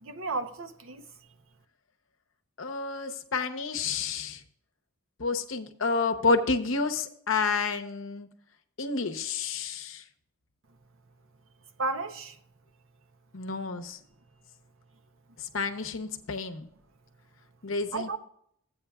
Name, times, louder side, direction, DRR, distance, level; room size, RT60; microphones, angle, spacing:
voice 1, 0.0-1.0 11.8-12.3 17.9-18.2, right 3 dB, 60° right, 0.8 m, -33 dB
voice 2, 2.6-4.4 5.2-8.3 8.8-10.0 13.3-14.0 15.4-16.7 17.6-18.2, left 4 dB, 60° left, 0.8 m, -30 dB
14.5 x 8.6 x 2.4 m
head